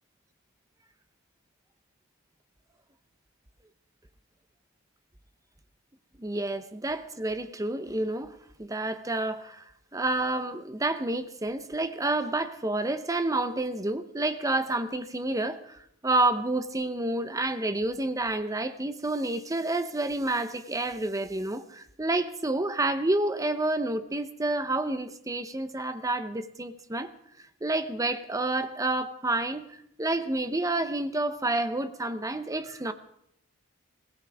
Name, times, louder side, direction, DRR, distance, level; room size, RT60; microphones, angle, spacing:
voice 1, 6.2-27.1 27.6-32.9, right 2 dB, 15° right, 0.7 m, -29 dB
20.5 x 17.0 x 3.5 m
head